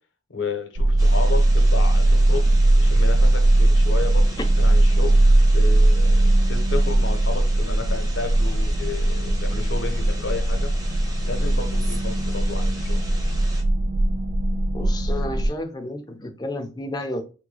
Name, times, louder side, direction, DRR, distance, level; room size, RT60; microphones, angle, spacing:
voice 1, 0.3-2.5 2.8-5.2 5.5-10.7 11.2-13.2, left 3 dB, 75° left, 6 dB, 0.8 m, -32 dB
sound 1, 0.8-15.5, right 1 dB, 70° right, 0.5 m, -19 dB
sound 2, 1.0-13.6, right 1 dB, 20° right, 0.8 m, -41 dB
voice 2, 14.7-17.2, left 1 dB, 20° left, 5 dB, 0.5 m, -31 dB
3.5 x 2.2 x 3.2 m, 0.33 s
head